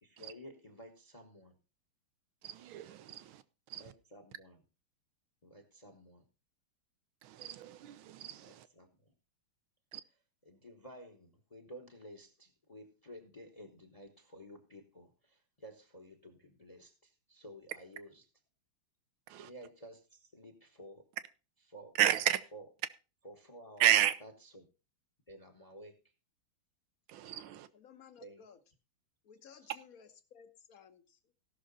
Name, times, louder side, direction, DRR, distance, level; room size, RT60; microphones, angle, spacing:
voice 1, 0.0-1.6 3.8-4.6 5.4-6.2 8.4-8.9 10.4-18.2 19.4-21.1 21.7-22.1 22.5-22.6 23.2-23.9 24.2-24.7 25.3-26.0 28.2-28.4 29.6-29.7, equal, 20° left, 1.0 m, -53 dB
voice 2, 2.4-3.4 3.7-3.9 7.2-8.7 9.9-10.0 19.3-19.5 22.0-22.4 23.8-24.1 27.1-27.7, right 12 dB, 75° right, 1.6 m, -32 dB
voice 3, 27.7-28.6 29.2-31.3, left 7 dB, 50° left, 1.3 m, -57 dB
17.0 x 6.3 x 4.0 m
omnidirectional pair, 2.3 m